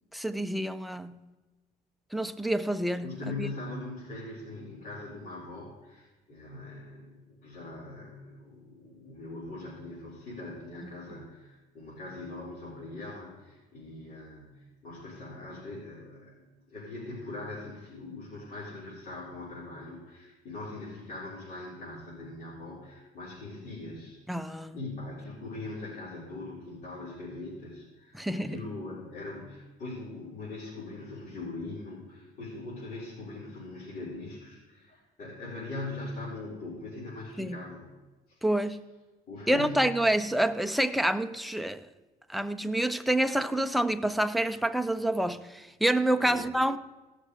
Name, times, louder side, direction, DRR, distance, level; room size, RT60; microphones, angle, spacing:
voice 1, 0.1-1.2 2.1-3.1 3.4-3.5 10.8-11.0 24.3-24.8 28.1-28.7 37.4-37.6 38.4-38.8 39.5-41.9 42.3-46.8, right 1 dB, ahead, 0.5 m, -28 dB
voice 2, 3.0-16.4 16.7-37.9 38.3-38.4 39.3-40.0 46.2-46.4, left 2 dB, 50° left, 4.6 m, -41 dB
16.5 x 6.5 x 4.9 m
cardioid pair, 110°, 17 cm